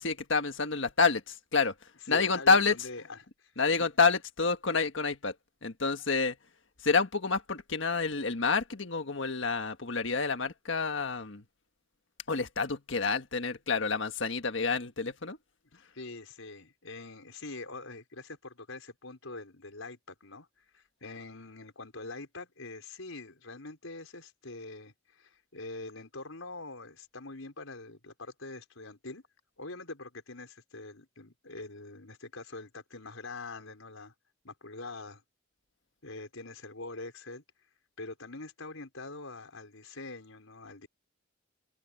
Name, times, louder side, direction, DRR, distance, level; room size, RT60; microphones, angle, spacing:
voice 1, 0.0-1.7 2.1-2.8 3.6-5.3 5.6-6.4 6.8-11.4 12.3-15.4, left 4 dB, 65° left, 1.6 m, -28 dB
voice 2, 2.1-3.6 15.7-20.5 20.7-29.2 29.6-34.1 34.4-35.2 36.0-37.4 38.0-40.9, left 3 dB, 85° left, 5.1 m, -44 dB
head